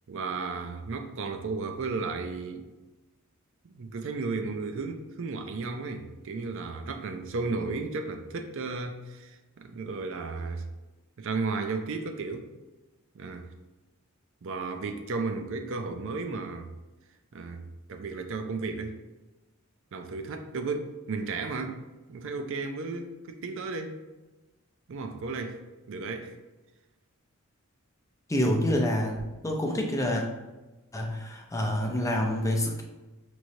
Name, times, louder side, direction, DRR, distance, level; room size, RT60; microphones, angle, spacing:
voice 1, 0.1-2.6 3.7-10.7 11.2-12.5 13.1-13.5 14.4-16.7 17.3-17.6 17.9-19.0 19.9-21.8 22.1-24.0 24.9-25.6 25.9-26.4, right 4 dB, 60° right, 6 dB, 0.4 m, -34 dB
voice 2, 28.3-30.2 30.9-32.8, left 1 dB, 15° left, 1 dB, 0.5 m, -27 dB
5.9 x 3.1 x 2.6 m, 1.1 s
head